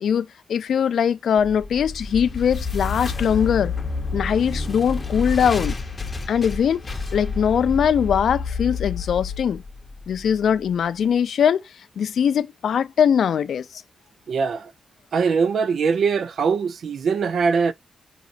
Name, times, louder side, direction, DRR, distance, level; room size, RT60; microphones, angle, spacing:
voice 1, 0.0-3.7 4.1-5.7 6.3-6.8 7.1-9.6 10.1-11.6 12.0-13.7, left 8 dB, 90° left, 0.4 m, -21 dB
sound 1, 1.4-10.5, left 4 dB, 30° left, 0.7 m, -29 dB
voice 2, 14.3-14.7 15.1-17.7, right 5 dB, 70° right, 0.4 m, -22 dB
5.0 x 3.0 x 2.4 m
wide cardioid pair, 145°, 0 cm